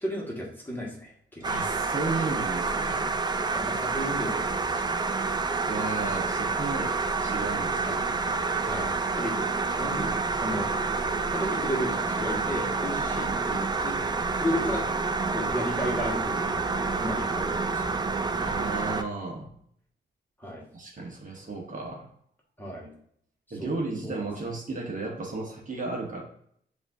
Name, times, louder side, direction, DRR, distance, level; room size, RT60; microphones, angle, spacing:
voice 1, 0.0-1.5 3.5-5.0 7.8-8.0 8.6-10.7 11.3-14.0 14.3-14.8 15.3-18.0 20.4-20.6 22.6-22.9 23.6-24.2, equal, 10° left, -3 dB, 1.5 m, -34 dB
sound 1, 1.4-19.0, right 4 dB, 20° right, 0.4 m, -28 dB
voice 2, 1.4-3.1 5.7-8.0 18.4-19.5 20.7-22.1 23.5-26.2, right 3 dB, 40° right, -1 dB, 1.0 m, -34 dB
6.8 x 2.6 x 2.6 m, 0.66 s
cardioid pair, 95°, 20 cm